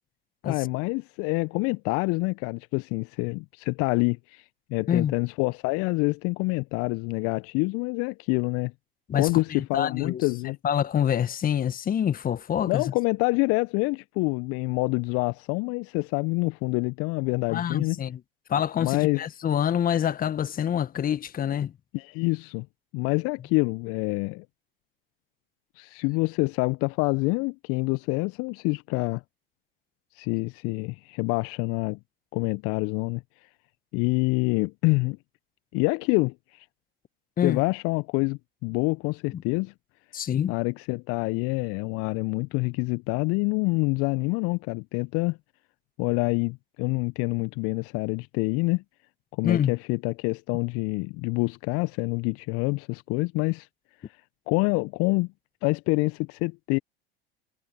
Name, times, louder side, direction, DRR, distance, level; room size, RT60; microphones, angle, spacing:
voice 1, 0.4-4.4 4.7-8.7 9.1-10.6 12.7-18.0 18.8-19.2 21.9-22.7 22.9-24.4 25.8-29.2 30.1-32.0 32.3-33.2 33.9-35.2 35.7-36.7 37.4-39.7 40.5-45.4 46.0-48.8 49.4-53.7 54.5-55.3 55.6-56.8, left 27 dB, 50° left, 1.2 m, -26 dB
voice 2, 9.1-12.9 17.5-18.2 18.5-21.8 37.4-37.6 39.3-39.4 40.1-40.5 49.4-49.7, left 9 dB, 30° left, 1.7 m, -26 dB
figure-of-eight pair, 80°, 29 cm